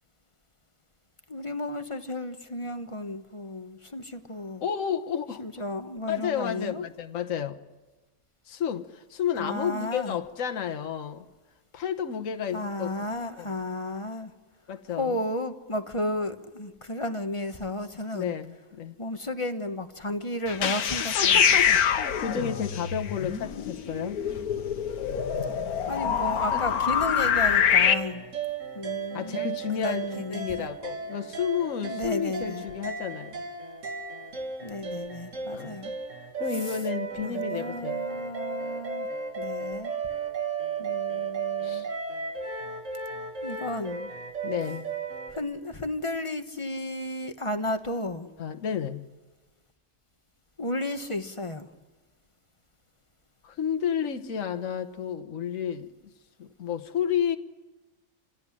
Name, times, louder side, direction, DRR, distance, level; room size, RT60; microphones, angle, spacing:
voice 1, 1.3-4.6 5.4-6.9 9.4-10.2 12.5-14.3 15.0-18.3 19.0-21.4 21.7-21.8 25.9-28.2 28.7-30.7 31.8-32.6 34.6-35.9 36.7-36.8 37.2-39.1 39.3-39.9 40.8-41.9 43.4-44.1 45.3-48.3 50.6-51.7, left 1 dB, 20° left, 1.2 m, -33 dB
voice 2, 4.6-5.4 6.1-7.6 8.5-11.2 11.7-12.9 13.4-13.5 14.7-15.2 18.1-18.9 20.6-24.2 26.5-26.8 29.1-33.4 35.5-35.8 36.4-38.1 41.6-41.9 44.4-44.9 48.4-49.1 53.4-55.9 56.4-57.4, left 8 dB, 65° left, 1.5 m, -31 dB
sound 1, 20.5-27.9, left 8 dB, 85° left, 1.5 m, -25 dB
sound 2, 27.6-45.4, right 5 dB, 55° right, 2.3 m, -35 dB
27.0 x 17.0 x 10.0 m
omnidirectional pair, 1.5 m